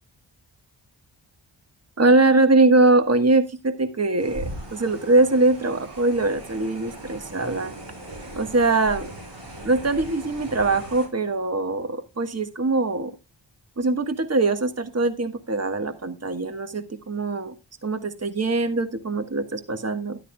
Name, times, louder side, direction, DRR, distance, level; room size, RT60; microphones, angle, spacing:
voice 1, 2.0-7.7 8.3-9.1 9.6-13.1 13.8-17.5 17.8-20.2, right 2 dB, 35° right, 9 dB, 1.4 m, -22 dB
sound 1, 4.2-11.1, right 1 dB, 65° right, 5.9 m, -39 dB
12.5 x 11.5 x 2.2 m, 0.25 s
wide cardioid pair, 60°, 44 cm